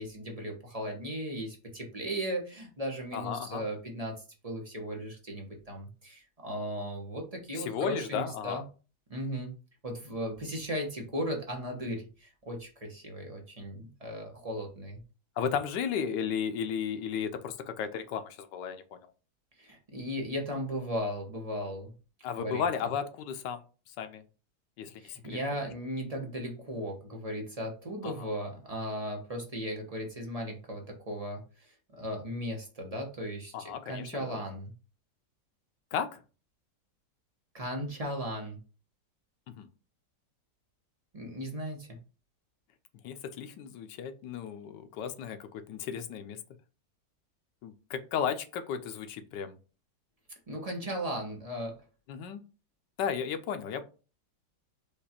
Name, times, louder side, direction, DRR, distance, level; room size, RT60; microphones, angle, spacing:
voice 1, 0.0-8.6 9.1-9.5 9.8-15.0 19.6-21.9 22.4-22.6 25.0-34.7 37.5-38.6 41.1-42.0 50.5-51.8, equal, 30° right, 1 dB, 0.8 m, -36 dB
voice 2, 3.1-3.6 7.5-8.6 15.4-19.0 22.2-23.6 23.9-24.2 24.8-25.4 28.0-28.3 33.5-34.4 35.9-36.2 39.6-39.7 43.0-46.4 47.6-49.6 52.1-52.4 53.0-53.8, left 7 dB, 85° left, 9 dB, 1.3 m, -34 dB
5.1 x 2.4 x 4.2 m, 0.35 s
omnidirectional pair, 1.8 m